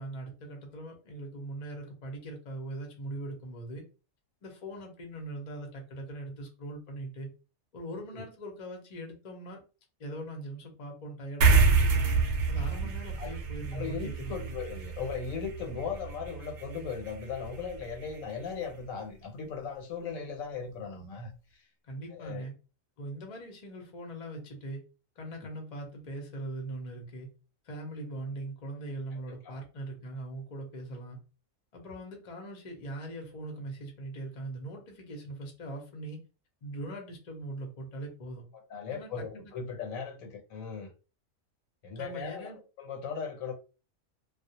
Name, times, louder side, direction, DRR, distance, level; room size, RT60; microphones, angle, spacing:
voice 1, 0.0-3.8 4.4-7.3 7.7-9.6 10.0-12.1 12.5-14.6 21.9-22.5 23.0-24.8 25.2-27.3 27.6-31.2 31.7-36.2 36.6-38.4 38.9-39.1 39.4-39.5 42.0-42.6, right 1 dB, 40° left, 0.6 m, -41 dB
sound 1, 11.4-18.2, right 4 dB, 65° right, 0.8 m, -28 dB
voice 2, 13.7-21.6 22.1-22.5 29.4-29.6 38.7-40.9 41.8-43.5, left 6 dB, 80° left, 1.0 m, -38 dB
2.3 x 2.0 x 2.7 m
omnidirectional pair, 1.4 m